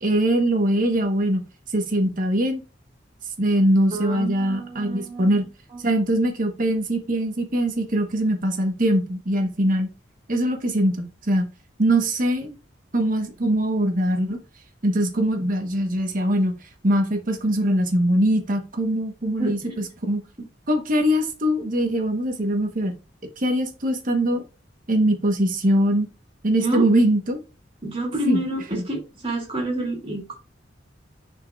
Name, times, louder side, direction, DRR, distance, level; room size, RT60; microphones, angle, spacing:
voice 1, 0.0-1.4 1.7-2.6 3.4-5.5 5.8-9.9 10.3-11.5 11.8-12.5 12.9-14.4 14.8-16.5 16.8-19.6 20.0-20.2 20.7-23.0 23.4-24.4 24.9-26.1 26.4-27.4 28.3-28.4 28.7-28.8, right 1 dB, 45° right, 1.2 m, -22 dB
voice 2, 3.9-5.3 19.2-19.8 26.6-26.8 27.8-30.4, right 1 dB, 30° right, 2.5 m, -28 dB
9.6 x 4.5 x 2.4 m
head